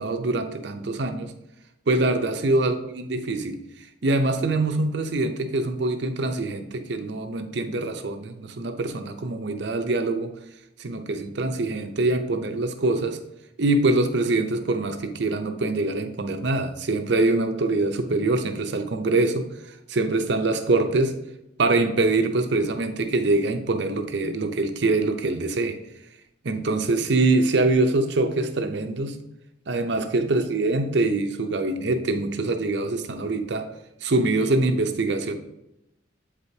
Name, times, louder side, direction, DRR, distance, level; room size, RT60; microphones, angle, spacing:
voice 1, 0.0-1.3 1.9-3.6 4.0-10.3 10.8-13.2 13.6-21.2 21.6-25.8 26.4-29.2 29.7-33.7 34.0-35.4, right 2 dB, 60° right, 6 dB, 0.6 m, -24 dB
8.0 x 4.9 x 2.7 m, 0.88 s
head